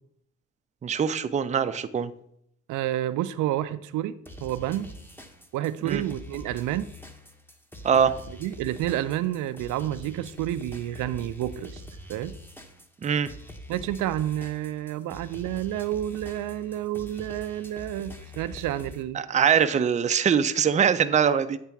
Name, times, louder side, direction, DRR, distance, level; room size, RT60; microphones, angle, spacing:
voice 1, 0.8-2.1 5.9-6.0 7.8-8.1 13.0-13.3 19.1-21.6, right 7 dB, 25° right, 10 dB, 0.4 m, -22 dB
voice 2, 2.7-4.9 5.5-6.9 8.4-11.8 12.1-12.4 13.7-19.2, right 13 dB, 85° right, 13 dB, 0.5 m, -29 dB
sound 1, 4.2-19.0, equal, 5° left, 0.9 m, -44 dB
8.4 x 3.3 x 5.8 m, 0.71 s
cardioid pair, 90°, 30 cm